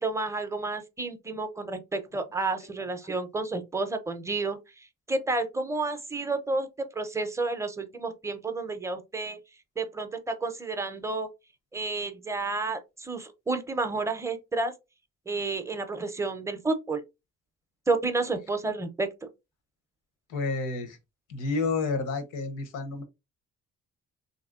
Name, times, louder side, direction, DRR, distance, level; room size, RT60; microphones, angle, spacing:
voice 1, 0.0-9.4 9.8-11.3 11.7-14.7 15.3-17.0 17.9-19.1, right 3 dB, 10° right, 0.5 m, -31 dB
voice 2, 20.3-21.0 21.3-23.0, left 3 dB, 85° left, 0.8 m, -30 dB
3.0 x 2.6 x 2.4 m
cardioid pair, 90°, 30 cm